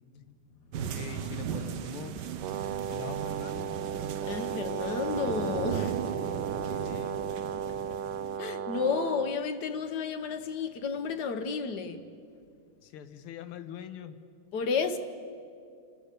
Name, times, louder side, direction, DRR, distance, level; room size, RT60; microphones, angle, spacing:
Dark background sounds, 0.7-8.4, right 8 dB, 65° right, 1.2 m, -37 dB
voice 1, 0.9-2.3 2.9-3.7 6.6-7.2 12.8-14.2, left 9 dB, 85° left, 1.8 m, -43 dB
Brass instrument, 2.4-9.4, right 8 dB, 85° right, 1.6 m, -35 dB
voice 2, 4.3-6.0 7.9-8.0 8.4-12.0 14.5-15.0, left 5 dB, 60° left, 1.4 m, -31 dB
29.5 x 13.5 x 6.8 m
omnidirectional pair, 2.4 m